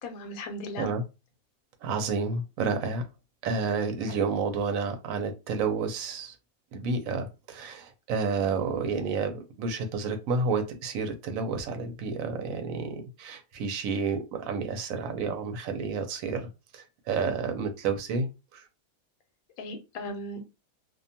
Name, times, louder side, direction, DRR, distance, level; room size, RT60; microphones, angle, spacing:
voice 1, 0.0-0.9 4.1-4.2 8.7-8.8 19.6-20.4, left 1 dB, 85° left, 6 dB, 1.1 m, -37 dB
voice 2, 1.8-3.0 3.4-6.3 6.7-16.5 16.7-18.6, right 4 dB, 75° right, 6 dB, 1.0 m, -30 dB
2.5 x 2.2 x 2.7 m, 0.27 s
omnidirectional pair, 1.5 m